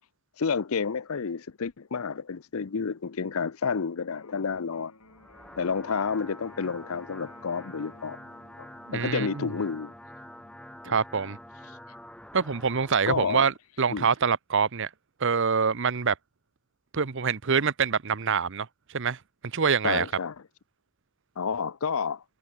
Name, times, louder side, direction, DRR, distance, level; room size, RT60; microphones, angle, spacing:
voice 1, 0.4-4.9 5.6-8.2 8.6-9.9 10.9-11.0 13.1-13.4 13.9-14.1 19.8-20.3 21.4-22.2, left 5 dB, 70° left, 0.6 m, -30 dB
Electric guitar, 4.1-12.1, left 2 dB, 90° left, 6.8 m, -58 dB
sound 1, 5.0-13.0, equal, 5° left, 5.8 m, -47 dB
voice 2, 8.9-9.5 10.8-11.4 12.3-14.9 15.2-16.1 16.9-19.2 19.4-20.1, right 6 dB, 55° right, 0.8 m, -25 dB
head